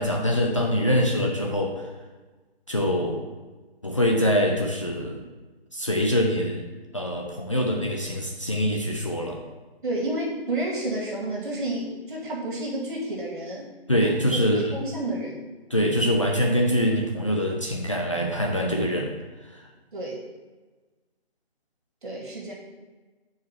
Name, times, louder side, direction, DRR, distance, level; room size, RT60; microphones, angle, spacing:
voice 1, 0.0-1.8 2.7-3.2 3.8-5.2 5.7-6.6 6.9-9.4 13.9-14.7 15.7-19.1, equal, 30° left, -1 dB, 0.5 m, -24 dB
voice 2, 9.8-13.7 14.3-14.4 14.7-15.4 19.9-20.2 22.0-22.5, right 1 dB, 50° right, -3 dB, 2.3 m, -30 dB
6.7 x 4.8 x 4.6 m, 1.3 s
hypercardioid pair, 170°, 31 cm